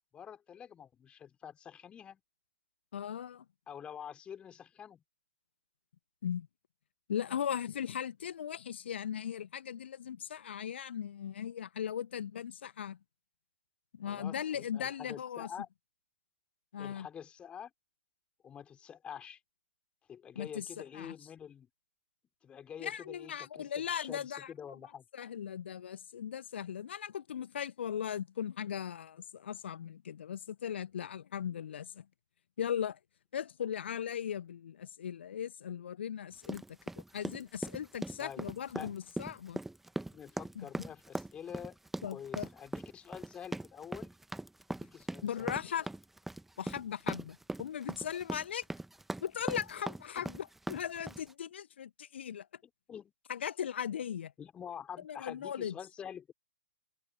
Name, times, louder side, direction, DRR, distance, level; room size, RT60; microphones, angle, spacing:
voice 1, 0.0-2.2 3.7-5.0 14.0-15.7 16.8-17.7 18.4-19.4 20.1-21.7 22.4-25.0 38.2-38.5 38.7-38.9 40.1-41.8 42.1-44.1 44.7-45.9 50.2-50.3 52.6-53.1 54.4-56.3, left 8 dB, 15° left, 3.9 m, -47 dB
voice 2, 2.9-3.4 6.2-6.5 7.1-13.0 13.9-15.5 16.7-17.1 20.3-20.7 20.9-21.1 22.8-24.5 25.1-32.0 32.6-33.0 33.3-36.6 37.1-39.6 40.5-40.7 42.0-42.5 45.2-45.9 46.6-48.6 49.2-52.5 53.3-54.3 55.0-55.7, left 9 dB, 55° left, 1.4 m, -38 dB
sound 1, 36.4-51.3, right 2 dB, 5° right, 1.4 m, -40 dB
figure-of-eight pair, 120°, 7 cm